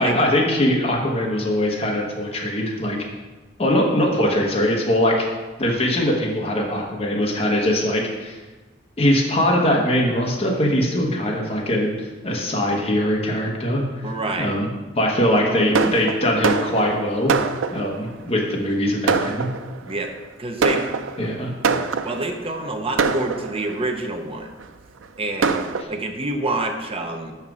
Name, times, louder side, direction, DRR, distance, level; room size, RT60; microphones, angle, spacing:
voice 1, 0.0-3.0 3.6-5.3 5.6-8.4 9.0-13.8 14.4-14.7 14.9-17.3 17.7-19.5 21.2-21.5, left 1 dB, 30° left, -1 dB, 1.1 m, -21 dB
voice 2, 14.0-14.6 19.9-20.1 20.4-20.9 21.8-24.5 25.2-25.6 25.9-27.3, right 2 dB, 30° right, 4 dB, 0.8 m, -27 dB
Fireworks, 15.7-18.1 18.7-18.8 19.1-19.9 20.6-22.4 23.0-23.9 24.6-24.7 25.0-25.1 25.4-25.8, right 4 dB, 90° right, 0.5 m, -24 dB
6.5 x 5.7 x 6.1 m, 1.2 s
head